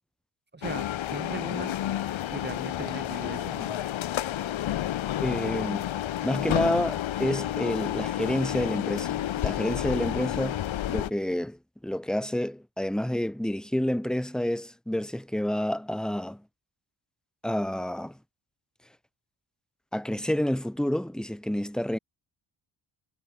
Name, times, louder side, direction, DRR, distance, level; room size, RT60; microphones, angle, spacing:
voice 1, 0.5-1.7 2.2-3.8, right 3 dB, 20° right, 2.0 m, -39 dB
sound 1, 0.6-11.1, left 12 dB, 65° left, 0.9 m, -30 dB
voice 2, 5.2-5.9 6.2-10.6 10.9-16.4 17.4-18.2 19.9-22.0, left 1 dB, ahead, 1.2 m, -29 dB
wide cardioid pair, 125°, 50 cm